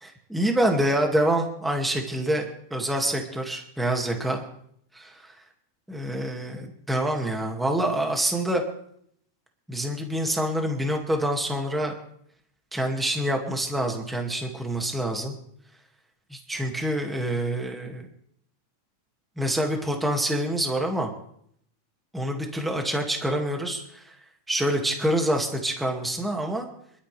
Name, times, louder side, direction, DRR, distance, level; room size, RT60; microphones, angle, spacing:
voice 1, 0.0-4.4 4.9-5.3 5.9-8.6 9.7-11.9 12.7-15.4 16.3-18.0 19.4-21.1 22.1-24.1 24.5-26.7, right 1 dB, ahead, 2 dB, 1.3 m, -26 dB
26.5 x 13.0 x 3.4 m, 0.70 s
omnidirectional pair, 3.6 m